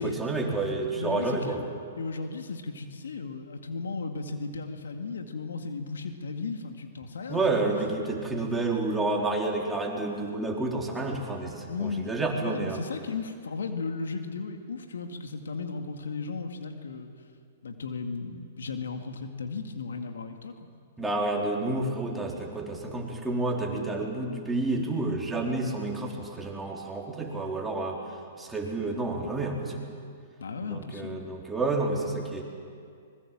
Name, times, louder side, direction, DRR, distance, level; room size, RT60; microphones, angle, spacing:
voice 1, 0.0-1.6 7.3-12.8 21.0-28.0 28.4-29.8 30.7-32.4, right 2 dB, 5° right, -2 dB, 4.2 m, -29 dB
voice 2, 1.0-1.7 2.0-7.6 11.7-12.1 12.4-17.1 17.6-20.6 30.4-31.2, left 4 dB, 80° left, 6 dB, 2.0 m, -35 dB
25.0 x 21.5 x 7.5 m, 2.3 s
hypercardioid pair, 120°, 0 cm